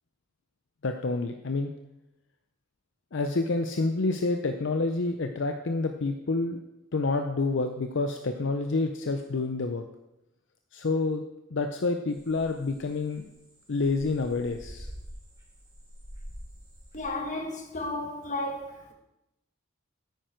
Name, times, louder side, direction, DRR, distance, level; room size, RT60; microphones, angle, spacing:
voice 1, 0.8-1.7 3.1-6.6 6.9-9.8 10.7-11.2 11.5-13.2 13.7-14.9, left 3 dB, 65° left, 0.6 m, -28 dB
sound 1, 12.1-17.0, equal, 20° right, 3.9 m, -46 dB
voice 2, 16.9-18.9, left 2 dB, 40° left, 1.6 m, -33 dB
9.5 x 9.2 x 4.5 m
head